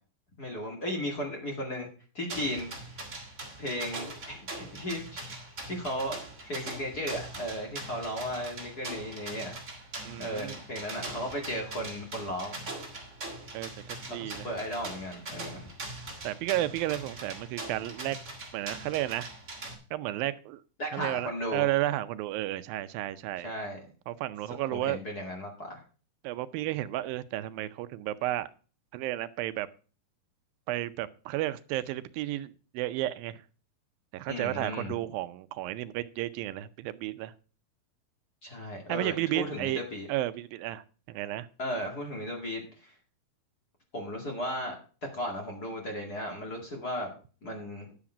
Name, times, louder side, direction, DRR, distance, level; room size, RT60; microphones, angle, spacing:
voice 1, 0.4-1.9 2.1-3.1 3.6-5.3 5.7-9.6 10.2-12.6 14.2-15.7 20.8-21.7 23.4-23.8 24.7-25.8 34.3-34.9 38.4-40.1 41.6-42.9 43.9-44.7 45.1-47.1 47.4-47.9, equal, 30° left, 2.2 m, -35 dB
sound 1, 2.3-19.7, right 2 dB, 20° right, 2.9 m, -42 dB
voice 2, 10.0-10.6 13.5-14.5 16.2-18.2 18.5-19.3 19.9-20.6 20.9-23.5 24.1-25.0 26.2-28.5 28.9-29.7 30.7-33.4 34.1-37.3 38.9-39.8 40.1-41.5, right 15 dB, 85° right, 2.4 m, -32 dB
10.5 x 7.3 x 4.9 m
omnidirectional pair, 4.1 m